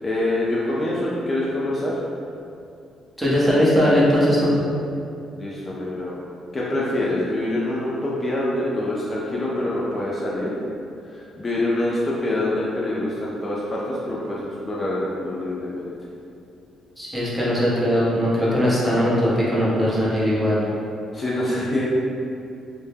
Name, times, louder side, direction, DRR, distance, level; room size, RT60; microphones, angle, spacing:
voice 1, 0.0-1.9 5.3-6.1 6.5-10.5 11.1-15.9 21.1-21.8, left 1 dB, 30° left, -6 dB, 0.4 m, -25 dB
voice 2, 3.2-4.5 17.0-20.6, equal, 10° right, -8 dB, 0.7 m, -19 dB
2.1 x 2.0 x 3.2 m, 2.5 s
cardioid pair, 90°, 0 cm